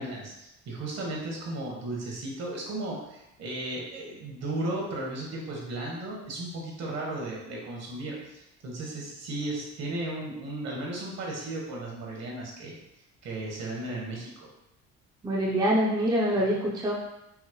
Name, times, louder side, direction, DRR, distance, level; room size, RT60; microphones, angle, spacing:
voice 1, 0.0-12.7 13.2-14.5, right 2 dB, 60° right, -2 dB, 1.4 m, -35 dB
voice 2, 15.2-16.9, equal, 15° right, -4 dB, 0.6 m, -25 dB
5.6 x 2.0 x 3.1 m, 0.88 s
cardioid pair, 120°, 30 cm